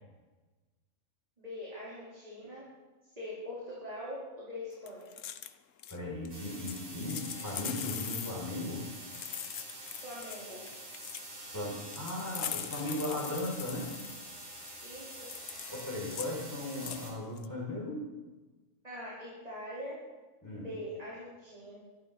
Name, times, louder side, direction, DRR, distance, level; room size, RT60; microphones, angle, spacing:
voice 1, 1.4-2.7 3.0-5.1 10.0-10.7 14.8-15.3 18.8-20.0 20.5-21.8, left 1 dB, 30° right, -7 dB, 4.5 m, -43 dB
sound 1, 4.9-5.5 5.8-6.0 6.2-6.3 6.6-8.3 9.0-10.4 10.7-11.3 11.9-14.2 14.6-14.7 15.0-16.3 16.7-17.0 17.4-17.5, left 9 dB, 75° left, 1.1 m, -41 dB
voice 2, 5.9-8.9 11.5-13.9 15.7-18.1 20.4-20.7, left 1 dB, 15° left, -6 dB, 6.9 m, -37 dB
sound 2, 6.3-17.1, right 1 dB, 70° right, 5.3 m, -46 dB
23.5 x 12.5 x 4.3 m, 1.2 s
omnidirectional pair, 1.4 m